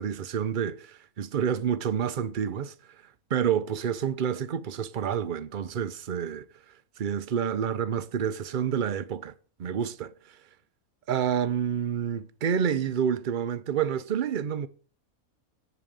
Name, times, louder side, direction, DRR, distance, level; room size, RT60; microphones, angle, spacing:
voice 1, 0.0-2.7 3.3-6.5 7.0-9.3 9.6-10.4 11.1-14.7, right 8 dB, 45° right, 0.7 m, -28 dB
11.0 x 8.5 x 6.7 m
omnidirectional pair, 1.5 m